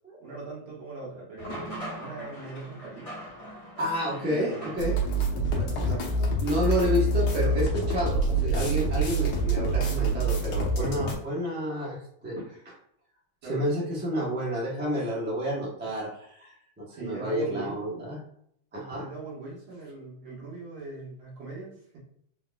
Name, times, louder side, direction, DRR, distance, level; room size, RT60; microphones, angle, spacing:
voice 1, 0.2-3.1 4.3-4.8 5.3-6.3 13.4-13.7 16.9-17.8 18.7-22.0, right 3 dB, 80° right, -5 dB, 2.5 m, -40 dB
sound 1, 1.4-5.3, right 1 dB, 25° left, 0.9 m, -41 dB
voice 2, 3.8-5.0 6.4-12.8 13.5-18.2 18.7-19.1, equal, 10° right, -4 dB, 0.6 m, -30 dB
sound 2, 4.8-11.1, right 2 dB, 60° left, 1.5 m, -26 dB
4.8 x 4.1 x 2.3 m, 0.70 s
omnidirectional pair, 2.3 m